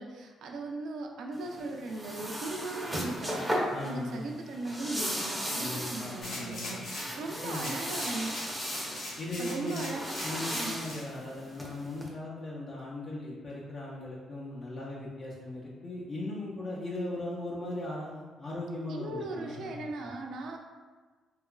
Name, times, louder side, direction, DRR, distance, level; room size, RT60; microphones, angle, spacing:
voice 1, 0.0-8.3 9.4-10.1 10.5-10.8 18.9-20.6, right 2 dB, 75° right, 1 dB, 0.3 m, -38 dB
sound 1, 1.3-12.1, equal, 5° right, 0.5 m, -37 dB
voice 2, 3.7-4.3 5.6-6.8 7.4-7.8 9.2-9.9 10.2-19.7 20.0-20.1, left 1 dB, 50° left, -6 dB, 0.5 m, -38 dB
sound 2, 6.2-7.2 7.5-11.0 11.5-11.6, left 1 dB, 80° left, 1.0 m, -41 dB
2.8 x 2.3 x 2.2 m, 1.4 s
cardioid pair, 90°, 0 cm